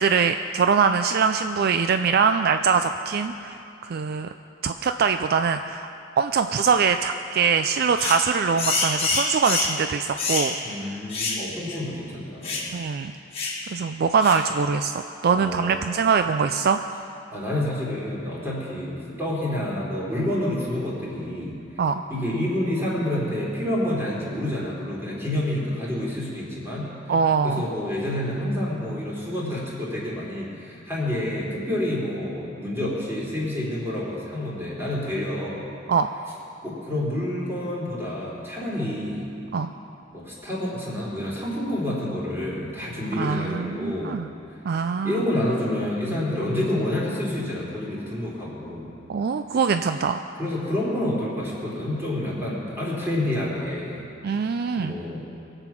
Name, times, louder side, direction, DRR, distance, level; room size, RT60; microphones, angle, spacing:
voice 1, 0.0-4.3 4.6-5.9 6.2-10.5 12.7-13.1 13.7-14.9 15.2-16.8 21.8-22.0 27.1-27.6 35.9-36.1 39.5-39.7 43.2-44.3 44.6-45.2 49.1-50.2 54.2-54.9, right 6 dB, 55° right, 8 dB, 0.4 m, -23 dB
sound 1, 8.0-8.3 8.6-9.8 10.2-10.5 11.1-11.4 11.7-11.8 12.4-12.7 13.3-13.6 14.2-14.5, left 3 dB, 30° left, 2.2 m, -26 dB
voice 2, 10.6-12.6 15.3-15.8 17.3-21.6 22.1-27.2 27.4-35.6 36.6-39.2 40.1-44.2 45.0-48.9 49.5-49.7 50.4-54.1 54.8-55.2, left 1 dB, 15° right, -5 dB, 3.6 m, -28 dB
22.0 x 8.0 x 5.9 m, 2.7 s
head